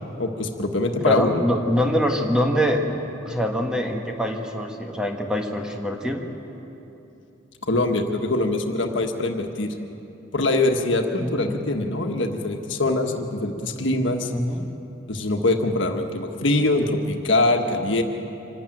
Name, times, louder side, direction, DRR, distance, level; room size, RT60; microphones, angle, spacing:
voice 1, 0.2-1.4 7.6-9.7 10.3-14.3 15.1-18.0, left 2 dB, 70° left, 4 dB, 1.5 m, -23 dB
voice 2, 1.0-6.2 11.2-11.5 14.3-14.7, equal, 5° right, 1 dB, 1.6 m, -24 dB
25.5 x 12.5 x 9.2 m, 3.0 s
head